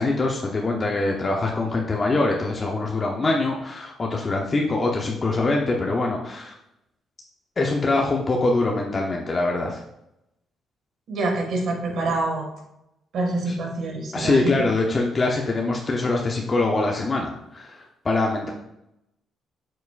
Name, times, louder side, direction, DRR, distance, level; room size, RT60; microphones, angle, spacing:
voice 1, 0.0-6.5 7.6-9.8 13.5-13.6 14.1-18.5, left 2 dB, 35° left, 0 dB, 0.8 m, -23 dB
voice 2, 11.1-12.5 13.1-14.7, right 2 dB, 65° right, 1 dB, 2.0 m, -26 dB
6.9 x 6.2 x 2.5 m, 0.84 s
cardioid pair, 90°, 0 cm